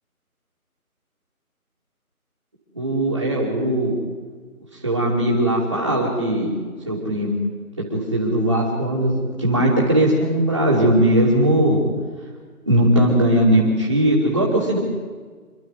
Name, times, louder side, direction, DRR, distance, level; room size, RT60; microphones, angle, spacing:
voice 1, 2.7-4.0 4.8-6.5 6.9-7.3 7.9-11.8 12.7-14.8, right 1 dB, 15° right, -9 dB, 2.6 m, -19 dB
27.5 x 12.0 x 9.6 m, 1.5 s
figure-of-eight pair, 175°, 44 cm